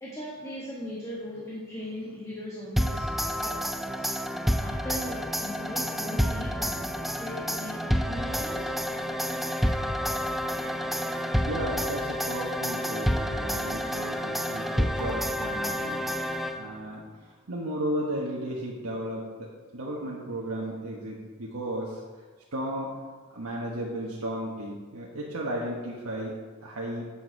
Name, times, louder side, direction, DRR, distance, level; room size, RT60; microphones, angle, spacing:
voice 1, 0.0-4.0 4.6-8.7, equal, 15° left, -6 dB, 1.5 m, -39 dB
sound 1, 2.8-16.9, equal, ahead, 0.3 m, -29 dB
voice 2, 11.5-16.1 16.6-22.0 22.5-22.9 23.3-26.4 26.6-27.1, right 1 dB, 85° right, -4 dB, 1.3 m, -34 dB
8.8 x 7.2 x 4.7 m, 1.4 s
head